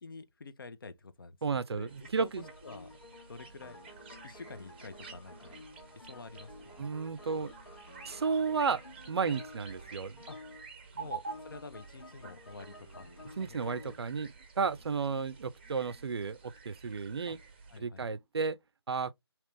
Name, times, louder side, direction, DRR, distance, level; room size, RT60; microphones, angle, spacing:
voice 1, 0.0-2.9 3.3-3.8 4.2-5.6 5.9-6.9 9.3-9.4 10.3-10.4 10.9-13.6 13.8-13.9 17.3-17.4 17.7-18.1, left 3 dB, 55° left, 0.6 m, -48 dB
voice 2, 1.4-2.5 6.8-7.5 8.1-8.8 9.1-10.2 13.4-17.4 17.8-18.6 18.9-19.1, right 5 dB, 70° right, 0.4 m, -33 dB
sound 1, 1.9-17.8, right 4 dB, 25° right, 0.6 m, -50 dB
sound 2, 2.4-14.0, left 2 dB, 75° left, 1.4 m, -52 dB
3.1 x 2.9 x 3.1 m
figure-of-eight pair, 165°, 14 cm